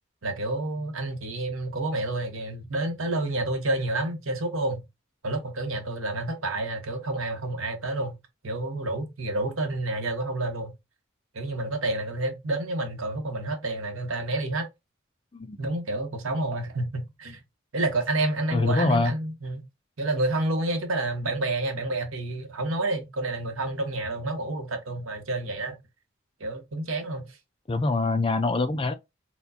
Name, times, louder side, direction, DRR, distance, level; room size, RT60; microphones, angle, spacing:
voice 1, 0.2-4.8 5.2-8.1 8.4-10.7 11.3-14.7 15.6-17.4 17.7-19.6 20.0-25.8 26.4-27.3, right 2 dB, 90° right, 1.0 m, -29 dB
voice 2, 18.5-19.1 27.7-28.9, left 3 dB, 25° left, 0.3 m, -24 dB
4.2 x 2.3 x 2.7 m
head